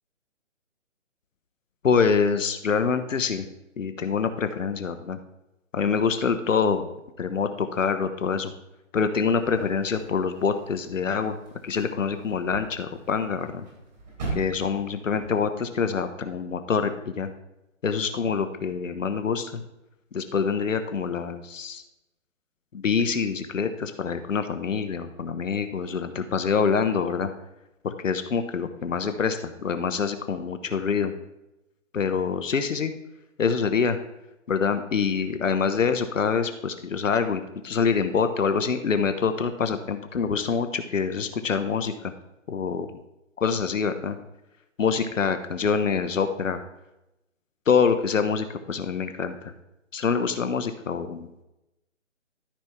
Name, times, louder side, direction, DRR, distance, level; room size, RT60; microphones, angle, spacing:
voice 1, 1.8-3.5 3.8-5.2 5.7-6.8 7.2-8.5 8.9-11.4 11.6-13.6 14.3-17.3 17.8-19.6 20.1-21.8 22.7-27.3 27.8-31.1 31.9-32.9 33.4-34.0 34.5-42.1 42.5-42.9 43.4-44.2 44.8-46.6 47.7-49.5 49.9-51.3, left 6 dB, 80° left, 9 dB, 1.1 m, -25 dB
sound 1, 9.4-15.3, right 3 dB, 35° right, 3.4 m, -40 dB
13.5 x 5.8 x 3.6 m, 0.91 s
hypercardioid pair, 165°, 38 cm